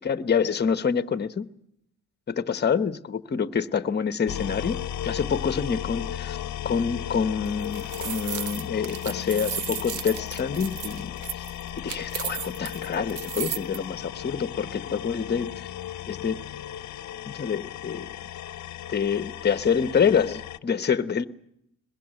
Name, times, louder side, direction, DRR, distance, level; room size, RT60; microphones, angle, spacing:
voice 1, 0.0-1.5 2.3-6.4 6.6-11.4 11.8-15.7 16.0-16.4 17.3-18.1 18.9-21.3, left 6 dB, 35° left, 11 dB, 1.1 m, -27 dB
sound 1, 4.3-20.6, left 11 dB, 70° left, 0.9 m, -36 dB
sound 2, 7.5-13.8, right 10 dB, 75° right, 1.0 m, -34 dB
22.0 x 21.5 x 7.9 m, 0.76 s
cardioid pair, 90°, 30 cm